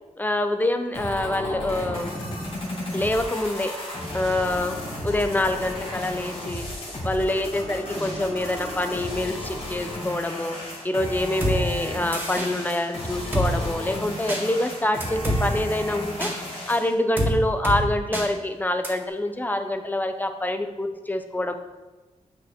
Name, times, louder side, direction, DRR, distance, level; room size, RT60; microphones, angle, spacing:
voice 1, 0.2-2.2 2.9-3.7 4.1-4.8 5.0-6.6 7.0-10.6 10.8-21.6, left 1 dB, 15° left, 7 dB, 0.7 m, -26 dB
sound 1, 0.9-16.9, left 1 dB, 45° left, 2.7 m, -34 dB
Drum kit, 11.4-11.6 12.1-12.5 13.3-13.5 14.3-14.4 15.0-15.4 16.2-16.3 17.2-17.3 17.6-17.8 18.1-18.3 18.8-18.9, equal, 15° right, 1.9 m, -25 dB
8.3 x 6.1 x 4.5 m, 1.2 s
wide cardioid pair, 110°, 13 cm